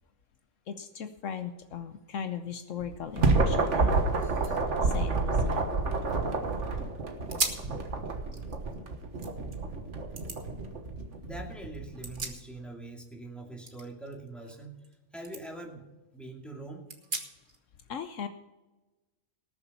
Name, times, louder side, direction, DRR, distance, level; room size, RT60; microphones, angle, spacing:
voice 1, 0.7-5.8 17.9-18.3, left 7 dB, 70° left, 9 dB, 1.1 m, -38 dB
sound 1, 2.8-12.3, right 3 dB, 60° right, 1.7 m, -29 dB
sound 2, 3.8-3.9 4.2-6.4 6.8-6.9 7.3-7.7 8.2-9.6 10.2-10.4 11.7-12.9 13.1-15.0 15.2-15.4 15.9-16.0 16.9-17.6, right 3 dB, 40° right, 1.6 m, -39 dB
voice 2, 11.2-14.8 15.1-15.9 16.1-16.9, right 2 dB, ahead, 0 dB, 2.4 m, -43 dB
19.0 x 7.1 x 5.5 m, 1.1 s
omnidirectional pair, 1.4 m